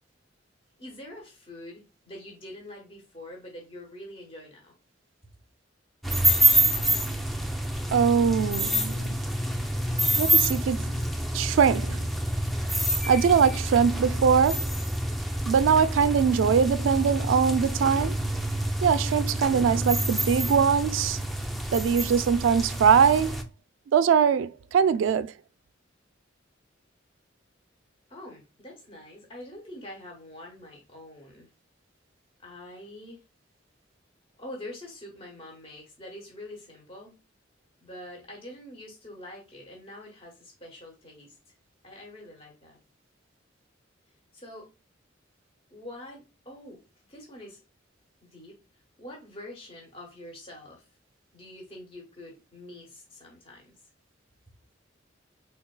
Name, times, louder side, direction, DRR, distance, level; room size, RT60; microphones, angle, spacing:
voice 1, 0.8-4.7 28.1-31.5 32.4-33.2 34.4-37.2 37.8-41.4 41.8-42.8 44.3-44.7 45.7-46.8 47.1-47.6 48.2-48.6 49.0-50.9 51.3-53.7, left 1 dB, 30° left, 1.1 m, -45 dB
sound 1, 6.0-23.4, right 1 dB, ahead, 0.4 m, -27 dB
voice 2, 7.9-9.0 10.2-10.9 11.3-12.1 13.1-14.7 15.5-18.3 18.8-21.2 21.7-23.5 23.9-25.3, right 7 dB, 75° right, 0.3 m, -22 dB
3.8 x 3.4 x 2.2 m
head